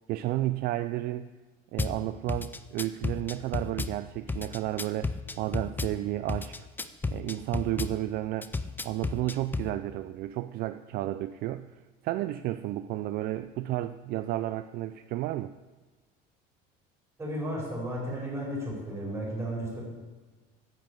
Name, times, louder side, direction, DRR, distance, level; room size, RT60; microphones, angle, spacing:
voice 1, 0.1-1.3 1.7-6.7 7.1-8.5 8.8-11.7 12.0-15.5, right 15 dB, 55° right, 12 dB, 0.4 m, -32 dB
Drum kit / Bass drum, 1.8-2.0 2.3-3.9 4.3-5.9 6.3-7.9 8.4-9.7, left 3 dB, 10° left, 0.5 m, -32 dB
voice 2, 17.2-19.8, equal, 15° right, -4 dB, 4.9 m, -34 dB
10.0 x 7.2 x 8.3 m, 1.3 s
cardioid pair, 135°, 19 cm